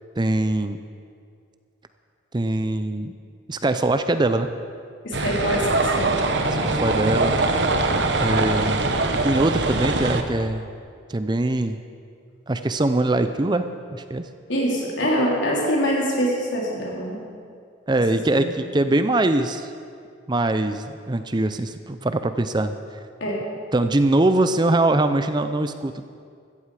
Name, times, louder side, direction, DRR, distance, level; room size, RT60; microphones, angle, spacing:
voice 1, 0.2-0.8 2.3-3.1 3.5-4.5 6.6-7.7 8.2-8.8 9.2-10.7 11.1-11.8 12.5-13.7 13.9-14.3 17.9-19.7 20.3-22.7 23.7-26.1, right 2 dB, 25° right, 10 dB, 0.5 m, -22 dB
voice 2, 5.0-6.1 14.5-17.2 18.1-18.5 23.2-23.4, equal, 75° left, -3 dB, 3.6 m, -24 dB
sound 1, 5.1-10.2, right 2 dB, 65° right, 1.1 m, -22 dB
15.5 x 14.0 x 4.9 m, 2.2 s
head